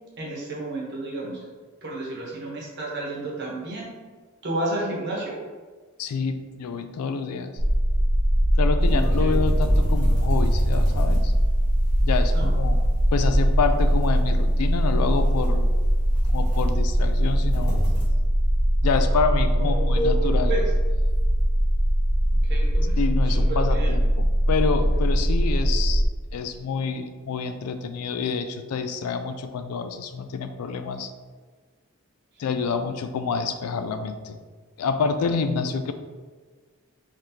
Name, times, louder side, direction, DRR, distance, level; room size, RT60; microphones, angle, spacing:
voice 1, 0.2-1.4 1.8-3.9 4.4-5.4 8.9-9.3 12.3-12.5 19.6-20.6 22.4-23.0 23.5-23.9, right 1 dB, 50° right, -4 dB, 1.0 m, -31 dB
voice 2, 6.0-7.5 8.6-11.3 12.0-12.8 13.1-15.7 16.3-17.9 18.8-20.5 23.0-26.0 26.3-31.1 32.4-34.4 34.8-35.9, left 5 dB, 90° left, 9 dB, 0.3 m, -27 dB
sound 1, 7.6-26.1, equal, 25° right, 0.6 m, -21 dB
sound 2, 8.8-18.0, equal, 20° left, 1.2 m, -33 dB
3.9 x 3.2 x 2.7 m, 1.4 s
head